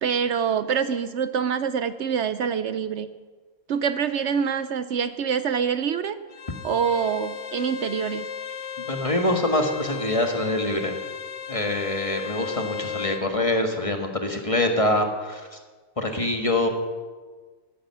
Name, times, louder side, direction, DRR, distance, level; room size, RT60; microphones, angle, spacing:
voice 1, 0.0-3.1 3.7-6.2 6.6-8.3, right 7 dB, 65° right, 12 dB, 0.9 m, -25 dB
Bowed string instrument, 6.3-13.3, left 8 dB, 65° left, 1.2 m, -35 dB
voice 2, 8.8-11.0 11.5-15.4 16.0-16.7, left 1 dB, 25° left, 4 dB, 1.5 m, -24 dB
14.5 x 10.5 x 7.4 m, 1.4 s
omnidirectional pair, 1.4 m